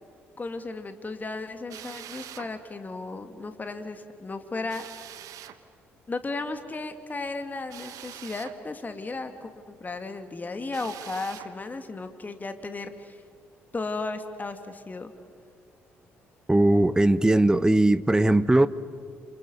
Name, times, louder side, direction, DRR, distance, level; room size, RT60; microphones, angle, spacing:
voice 1, 0.4-4.9 6.1-13.2 13.7-15.1, left 3 dB, 25° left, 8 dB, 2.3 m, -35 dB
Drill, 1.7-2.5 4.7-5.6 7.7-8.6 10.7-11.5, right 12 dB, 60° right, 1.1 m, -43 dB
voice 2, 16.5-18.7, right 1 dB, 10° right, 15 dB, 0.9 m, -19 dB
30.0 x 28.5 x 5.5 m, 2.1 s
figure-of-eight pair, 45°, 6 cm